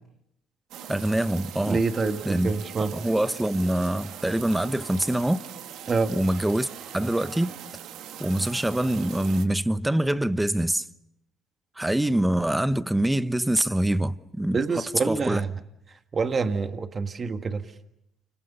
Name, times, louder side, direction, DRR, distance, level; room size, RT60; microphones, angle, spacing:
sound 1, 0.7-9.5, right 10 dB, 70° right, 1.8 m, -41 dB
voice 1, 0.9-1.8 2.2-2.5 2.8-5.4 6.1-6.7 6.9-7.5 8.2-10.8 11.8-14.6 15.1-15.4, right 1 dB, 10° right, 1.1 m, -24 dB
voice 2, 1.7-2.9 5.9-6.1 14.5-15.5 16.1-17.6, right 4 dB, 35° right, 1.7 m, -26 dB
29.5 x 26.0 x 6.8 m
supercardioid pair, 70°, 0 cm